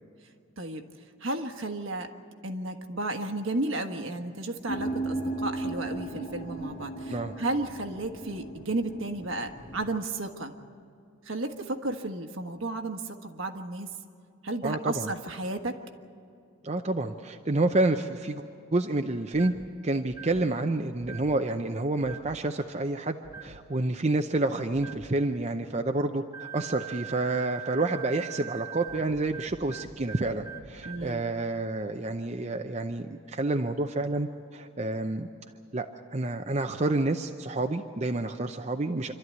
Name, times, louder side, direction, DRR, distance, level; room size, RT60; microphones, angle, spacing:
voice 1, 1.2-2.1 2.4-10.5 11.2-13.9 14.4-15.8 30.8-31.2, right 2 dB, 65° right, 6 dB, 1.4 m, -33 dB
sound 1, 4.7-10.0, right 2 dB, 40° left, 1.4 m, -36 dB
voice 2, 14.6-15.1 16.6-18.4 18.7-19.5 19.8-35.3 35.7-35.9 36.1-39.1, right 2 dB, 30° right, 5 dB, 0.6 m, -29 dB
sound 2, 19.3-19.7 20.1-20.5 21.0-21.4 22.0-22.4 23.2-23.6 24.7-25.1 26.3-31.1, right 8 dB, 15° right, 1.0 m, -43 dB
26.5 x 13.0 x 9.5 m, 2.5 s
head